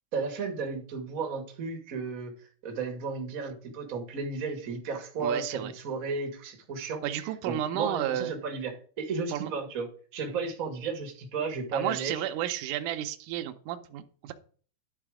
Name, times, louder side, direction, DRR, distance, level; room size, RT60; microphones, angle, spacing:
voice 1, 0.1-2.3 2.6-9.8 10.1-12.2, right 4 dB, 60° right, 3 dB, 0.8 m, -34 dB
voice 2, 5.2-5.7 7.0-8.3 9.3-9.5 11.7-14.3, right 12 dB, 80° right, 6 dB, 1.9 m, -32 dB
11.0 x 4.1 x 4.8 m, 0.42 s
omnidirectional pair, 4.3 m